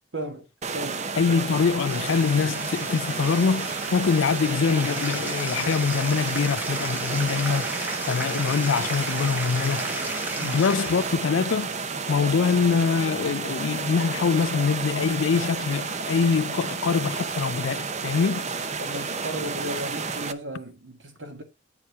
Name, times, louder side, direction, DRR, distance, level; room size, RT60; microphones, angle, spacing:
voice 1, 0.1-1.0 10.4-10.6 18.8-21.4, right 1 dB, 65° right, 2.0 m, -35 dB
sound 1, 0.6-20.3, right 4 dB, 35° right, 0.7 m, -31 dB
voice 2, 1.2-10.0 10.4-11.7 12.1-18.5, left 5 dB, 75° left, 0.4 m, -24 dB
Bathtub (filling or washing), 1.4-11.4, right 1 dB, 10° right, 0.9 m, -35 dB
9.8 x 4.6 x 4.6 m
head